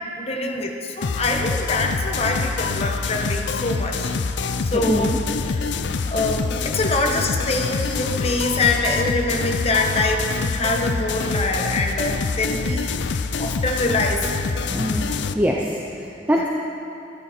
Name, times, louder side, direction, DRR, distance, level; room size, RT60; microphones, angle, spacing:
voice 1, 0.2-4.2 4.6-5.7 6.1-12.8 13.4-14.3 16.4-16.5, left 2 dB, 35° left, 2 dB, 1.2 m, -24 dB
sound 1, 1.0-15.3, left 4 dB, 70° left, 0.5 m, -26 dB
voice 2, 4.7-5.2 7.8-8.0 8.5-8.7 14.7-15.1 15.3-15.8 16.3-16.5, equal, 10° right, -2 dB, 0.7 m, -23 dB
12.5 x 12.5 x 4.4 m, 2.7 s
head